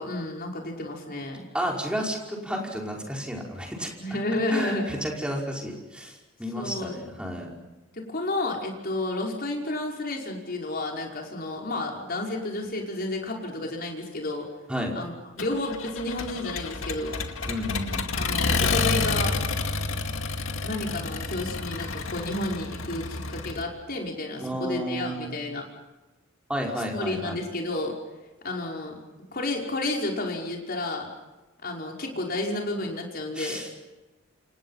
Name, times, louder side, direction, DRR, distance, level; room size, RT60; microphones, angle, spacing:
voice 1, 0.0-1.4 4.0-4.9 6.5-7.0 7.9-14.5 15.0-17.2 18.2-19.3 20.6-25.7 26.9-27.9 28.4-29.0 29.3-31.1 31.6-33.6, left 2 dB, 50° left, 0 dB, 5.5 m, -31 dB
voice 2, 1.5-3.9 4.5-7.5 14.7-15.0 17.5-18.1 24.4-25.3 26.5-27.4 33.4-33.7, equal, 5° right, -1 dB, 5.3 m, -32 dB
Accelerating revving vroom, 15.4-23.6, left 3 dB, 80° left, 2.2 m, -29 dB
28.5 x 28.0 x 5.8 m, 1.1 s
head